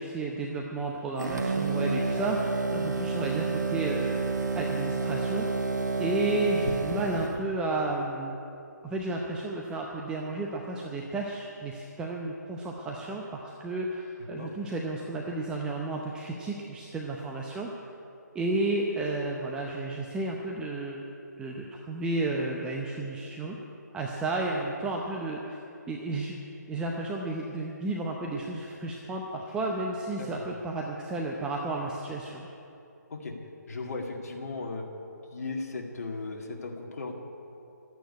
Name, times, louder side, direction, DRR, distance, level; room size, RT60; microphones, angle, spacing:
voice 1, 0.0-4.2 4.6-5.5 6.0-8.4 8.8-17.7 18.3-21.0 21.4-23.6 23.9-25.6 25.9-26.4 26.7-32.5, right 2 dB, 10° right, -1 dB, 0.7 m, -32 dB
sound 1, 1.2-7.4, right 3 dB, 70° right, 1.6 m, -29 dB
voice 2, 33.7-34.8 35.3-37.1, left 3 dB, 55° left, 0 dB, 2.1 m, -36 dB
12.5 x 9.1 x 9.4 m, 2.8 s
figure-of-eight pair, 150°, 10 cm